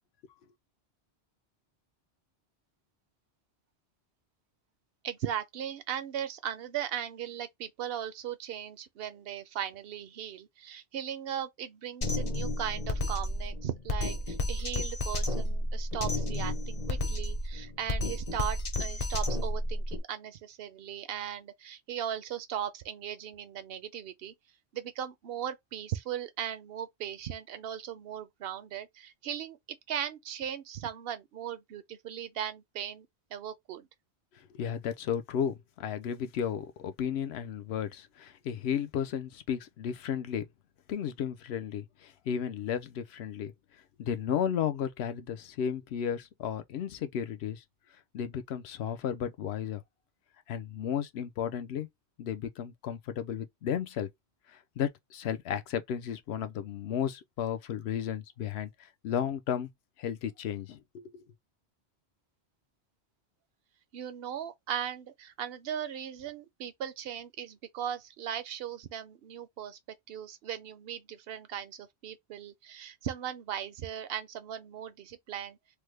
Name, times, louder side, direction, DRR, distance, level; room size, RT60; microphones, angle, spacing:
voice 1, 5.0-24.3 24.7-29.6 29.9-33.9 63.9-69.8 70.1-75.6, right 9 dB, 65° right, 0.7 m, -38 dB
Drum kit, 12.0-20.0, left 1 dB, 40° left, 0.7 m, -31 dB
voice 2, 34.3-40.4 40.9-43.5 44.0-47.6 48.1-49.8 50.5-51.9 52.2-54.1 54.5-59.7 60.0-61.3, left 8 dB, 75° left, 0.8 m, -34 dB
3.4 x 2.1 x 3.2 m
omnidirectional pair, 1.1 m